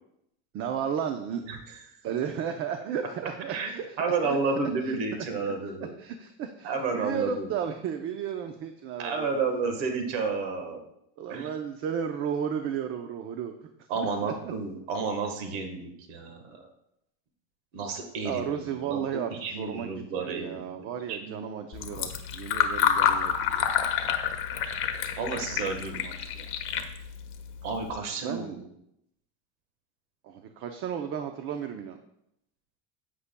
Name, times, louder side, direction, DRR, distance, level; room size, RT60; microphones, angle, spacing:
voice 1, 0.5-1.4 2.0-4.4 4.8-5.0 5.4-5.5 6.0-9.4 11.2-13.7 14.0-14.5 18.2-23.6 28.2-28.6 30.2-32.0, right 8 dB, 45° right, 6 dB, 0.7 m, -34 dB
voice 2, 1.5-1.8 3.5-5.9 6.6-7.5 9.0-10.8 11.3-11.5 13.9-16.6 17.7-21.4 25.2-26.4 27.6-28.7, right 4 dB, 90° right, 5 dB, 1.5 m, -31 dB
Fill (with liquid), 21.7-27.9, left 8 dB, 45° left, 0.9 m, -29 dB
11.0 x 8.3 x 2.2 m, 0.79 s
cardioid pair, 150°, 29 cm